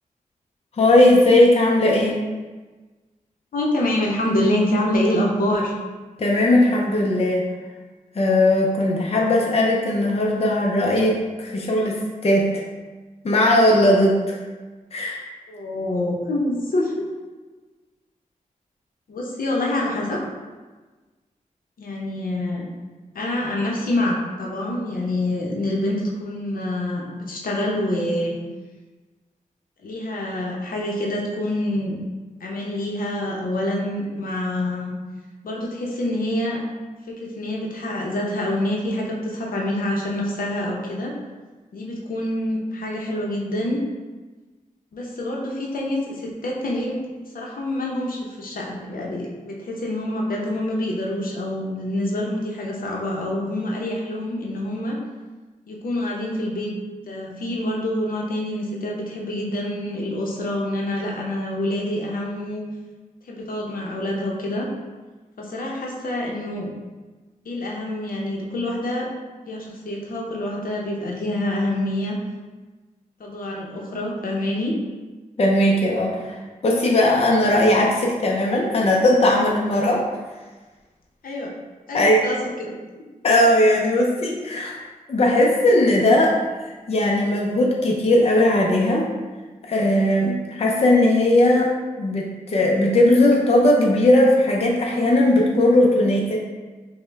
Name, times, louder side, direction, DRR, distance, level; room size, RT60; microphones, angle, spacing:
voice 1, 0.8-2.2 6.2-7.4 8.2-12.6 13.2-14.4 14.9-15.2 75.4-76.4 76.6-80.0 81.9-82.2 83.2-84.8 85.1-89.1 89.7-91.7 92.0-96.4, left 1 dB, 45° left, -1 dB, 0.5 m, -18 dB
voice 2, 3.5-5.8 15.5-17.0 19.1-20.2 21.8-22.7 23.1-28.4 29.8-32.0 32.4-34.9 35.4-36.6 37.1-41.2 41.7-43.8 44.9-47.0 47.3-55.0 55.7-56.7 57.1-62.6 63.2-64.7 65.4-66.7 67.4-69.1 69.5-72.2 73.2-74.7 81.2-81.5 81.9-82.7, left 1 dB, 80° left, -2 dB, 0.7 m, -26 dB
5.1 x 2.2 x 3.3 m, 1.3 s
wide cardioid pair, 95°, 14 cm